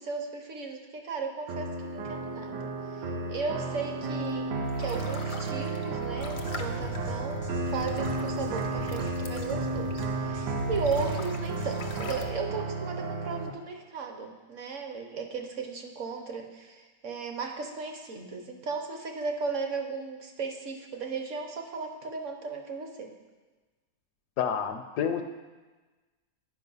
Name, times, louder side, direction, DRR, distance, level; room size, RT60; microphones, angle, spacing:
voice 1, 0.0-2.6 2.9-4.5 4.8-23.1, right 4 dB, 55° right, 4 dB, 0.9 m, -36 dB
sound 1, 1.5-13.5, right 3 dB, 70° right, 1.3 m, -33 dB
sound 2, 4.3-10.3 10.7-12.2, left 3 dB, 55° left, 0.5 m, -45 dB
sound 3, 6.2-12.3, left 2 dB, 90° right, 2.0 m, -39 dB
voice 2, 24.4-25.2, left 8 dB, 75° left, 7 dB, 1.0 m, -29 dB
9.8 x 5.0 x 5.4 m, 1.3 s
omnidirectional pair, 1.9 m